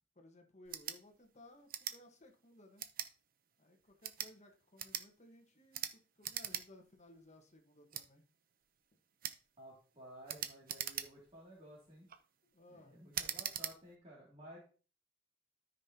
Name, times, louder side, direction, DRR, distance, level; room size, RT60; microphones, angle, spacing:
voice 1, 0.1-2.8 3.6-8.2 12.4-13.0, left 1 dB, 40° left, 4 dB, 1.3 m, -60 dB
sound 1, 0.6-1.0 1.7-2.0 2.8-3.1 3.9-4.3 4.8-5.1 5.7-5.9 6.2-6.6 7.0-7.1 7.9-8.1 9.2-9.4 10.3-11.3 11.9-12.2 13.1-13.7, right 10 dB, 50° right, 0.7 m, -41 dB
voice 2, 9.6-12.1 12.7-14.6, right 1 dB, 35° right, -6 dB, 2.6 m, -55 dB
13.0 x 5.5 x 2.9 m, 0.38 s
head